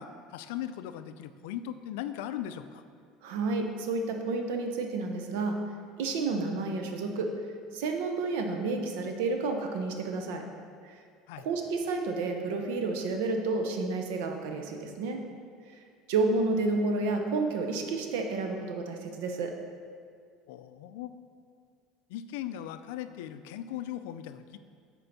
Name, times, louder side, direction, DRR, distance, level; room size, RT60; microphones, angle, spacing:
voice 1, 0.0-2.8 11.3-11.5 20.5-21.1 22.1-24.6, left 11 dB, 85° left, 11 dB, 0.3 m, -38 dB
voice 2, 3.2-5.6 6.0-7.3 7.7-10.4 10.8-10.9 11.4-15.2 16.1-19.5, right 3 dB, 85° right, 4 dB, 0.7 m, -30 dB
7.7 x 4.5 x 4.0 m, 2.2 s
cardioid pair, 130°, 0 cm